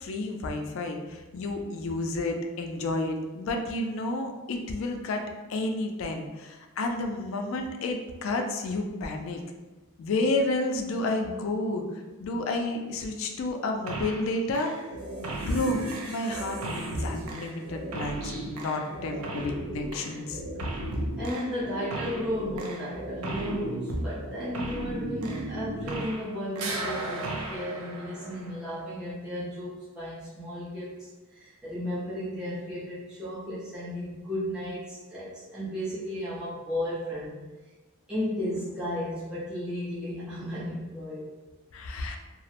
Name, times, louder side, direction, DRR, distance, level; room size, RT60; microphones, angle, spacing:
voice 1, 0.0-5.2 5.5-9.4 10.0-11.9 12.2-14.7 15.4-20.4 41.7-42.2, left 2 dB, 60° left, 3 dB, 0.3 m, -30 dB
sound 1, 13.9-14.3 14.5-26.3 26.6-28.8, right 2 dB, 80° right, 0.4 m, -35 dB
voice 2, 19.1-19.5 21.2-37.4 38.1-41.3, left 1 dB, 5° right, -11 dB, 0.4 m, -34 dB
2.3 x 2.0 x 2.8 m, 1.2 s
head